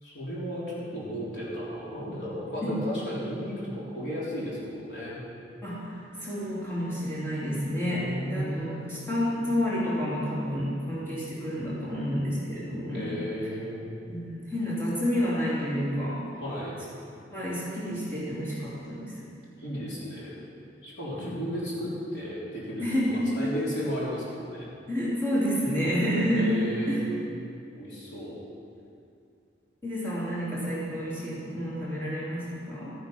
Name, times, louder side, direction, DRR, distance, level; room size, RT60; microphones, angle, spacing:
voice 1, 0.0-5.2 7.9-9.1 12.9-13.9 16.3-16.7 19.6-20.4 20.8-24.7 26.3-27.1 27.7-28.4, equal, 65° left, -7 dB, 3.6 m, -34 dB
voice 2, 5.6-5.9 6.2-13.2 14.1-16.2 17.3-19.2 21.2-21.3 22.8-23.3 24.9-26.5 26.9-27.0 29.8-32.9, equal, 15° left, -10 dB, 3.5 m, -29 dB
13.5 x 9.6 x 5.5 m, 2.4 s
head